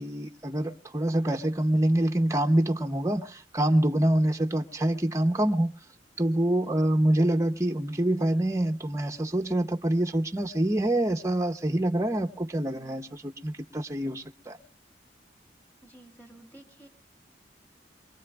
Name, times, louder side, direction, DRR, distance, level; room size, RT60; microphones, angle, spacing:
voice 1, 0.0-5.7 6.2-14.6, right 1 dB, 15° right, 0.8 m, -26 dB
voice 2, 15.8-16.9, right 1 dB, 10° left, 2.2 m, -52 dB
23.5 x 23.0 x 2.4 m
head